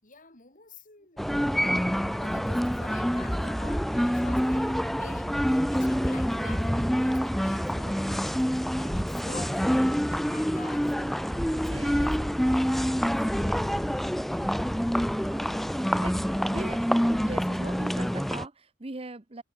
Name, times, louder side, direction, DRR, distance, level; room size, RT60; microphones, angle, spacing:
voice 1, 0.0-12.6 14.4-14.9, left 4 dB, 45° left, 7.3 m, -49 dB
sound 1, 1.2-18.4, equal, ahead, 0.5 m, -27 dB
voice 2, 11.7-12.4 13.1-13.7 15.2-19.4, right 2 dB, 30° right, 1.0 m, -41 dB
head